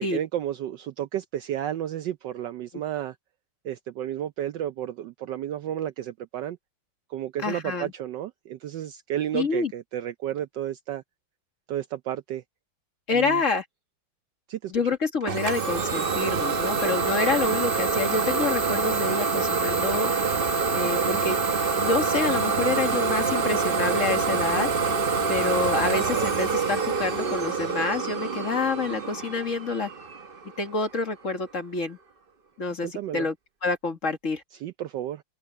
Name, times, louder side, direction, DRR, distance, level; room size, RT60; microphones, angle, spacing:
voice 1, 0.1-3.1 3.6-6.6 7.1-11.0 11.7-12.4 13.1-13.4 14.5-14.7 32.8-33.3 34.6-35.2, right 11 dB, 70° right, 1.1 m, -32 dB
voice 2, 7.4-7.9 9.3-9.7 13.1-13.6 14.7-20.1 20.7-21.4 21.8-24.7 25.3-29.9 30.6-32.0 32.6-33.4 33.6-34.4, left 4 dB, 40° left, 2.0 m, -27 dB
Idling / Domestic sounds home sounds, 15.3-30.8, right 4 dB, 40° right, 0.8 m, -26 dB
open air
omnidirectional pair, 2.3 m